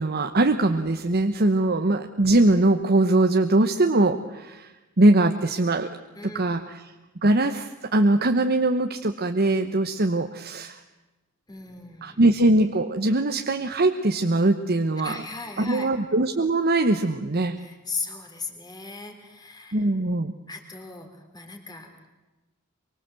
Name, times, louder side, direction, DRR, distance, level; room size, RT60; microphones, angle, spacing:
voice 1, 0.0-4.7 5.0-5.9 6.2-6.9 7.2-10.8 12.0-15.2 15.6-17.6 19.7-20.3, right 2 dB, 45° right, 6 dB, 1.0 m, -21 dB
voice 2, 6.1-6.6 11.5-12.2 15.0-15.9 17.6-19.8 20.5-21.9, left 4 dB, 20° left, 4 dB, 3.4 m, -37 dB
24.5 x 23.5 x 7.7 m, 1.1 s
head